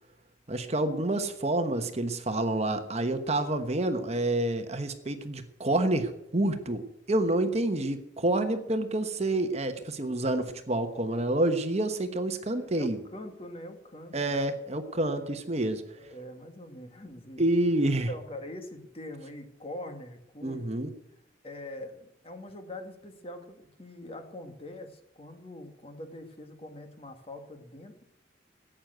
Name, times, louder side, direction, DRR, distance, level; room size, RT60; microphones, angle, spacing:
voice 1, 0.5-13.0 14.1-15.8 17.4-18.1 20.4-20.9, right 1 dB, 35° right, 8 dB, 1.1 m, -28 dB
voice 2, 12.5-14.4 16.0-17.4 18.1-20.9 21.4-28.0, left 1 dB, 30° left, 6 dB, 1.8 m, -43 dB
14.0 x 9.0 x 7.9 m, 0.81 s
head